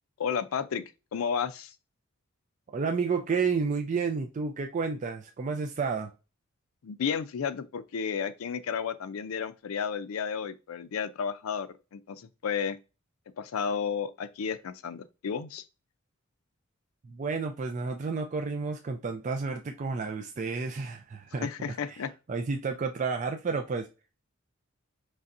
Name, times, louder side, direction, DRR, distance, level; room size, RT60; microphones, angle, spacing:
voice 1, 0.2-0.8 1.1-1.7 6.8-12.8 13.4-15.6 21.4-22.1, left 6 dB, 85° left, 0.4 m, -32 dB
voice 2, 2.7-6.1 17.0-21.5 21.9-22.0 22.3-23.9, right 4 dB, 35° right, 0.4 m, -31 dB
4.1 x 3.3 x 2.5 m
head